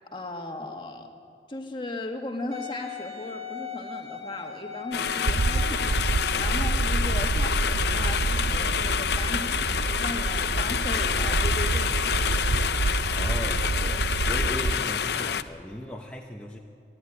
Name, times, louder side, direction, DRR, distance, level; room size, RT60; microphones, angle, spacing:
voice 1, 0.1-1.1 1.5-12.3, left 1 dB, 25° left, 4 dB, 1.6 m, -37 dB
Wind instrument woodwind instrument, 2.5-6.8 7.5-7.6, left 7 dB, 35° right, 1.4 m, -40 dB
sound 1, 4.9-15.4, left 7 dB, 70° left, 0.6 m, -28 dB
sound 2, 5.3-14.8, right 3 dB, 55° right, 0.5 m, -28 dB
voice 2, 13.1-16.6, left 1 dB, 5° left, 0 dB, 0.9 m, -38 dB
27.0 x 11.5 x 9.8 m, 2.4 s
head